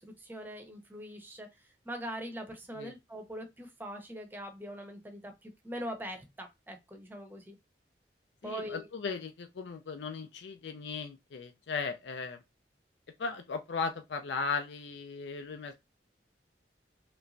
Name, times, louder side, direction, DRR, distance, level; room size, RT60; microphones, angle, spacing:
voice 1, 0.0-7.6 8.4-8.9, equal, 10° right, 0.7 m, -42 dB
voice 2, 8.4-12.4 13.2-15.8, left 5 dB, 85° left, 0.4 m, -37 dB
3.3 x 3.0 x 2.5 m
head